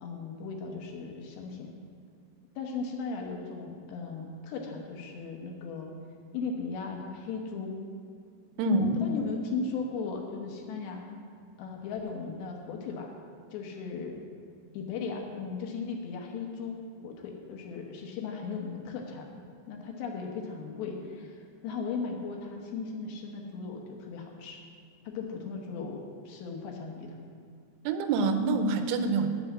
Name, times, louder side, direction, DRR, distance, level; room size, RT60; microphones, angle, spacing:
voice 1, 0.0-1.7 2.6-5.9 6.3-7.8 8.8-11.0 11.6-13.1 13.5-14.2 14.7-24.6 25.1-27.2, left 4 dB, 75° left, 1 dB, 3.0 m, -37 dB
voice 2, 8.6-9.0 27.8-29.3, right 3 dB, 85° right, 7 dB, 3.1 m, -26 dB
8.9 x 8.1 x 7.1 m, 2.2 s
omnidirectional pair, 5.4 m